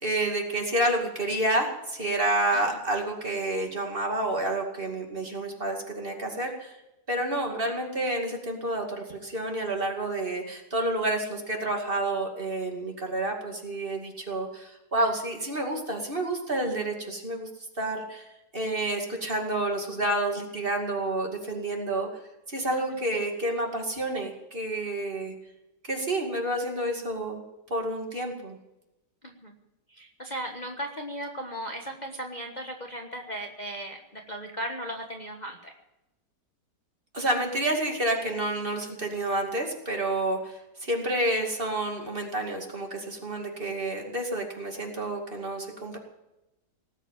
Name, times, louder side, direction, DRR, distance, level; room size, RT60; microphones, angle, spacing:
voice 1, 0.0-6.7 7.1-17.5 17.8-18.2 18.5-22.1 22.5-25.3 25.8-27.4 27.7-28.6 37.1-46.0, right 1 dB, 30° right, 2 dB, 2.5 m, -29 dB
voice 2, 29.2-29.5 29.9-35.7, right 1 dB, 25° left, 1 dB, 1.4 m, -37 dB
18.5 x 8.2 x 9.1 m, 0.94 s
omnidirectional pair, 1.9 m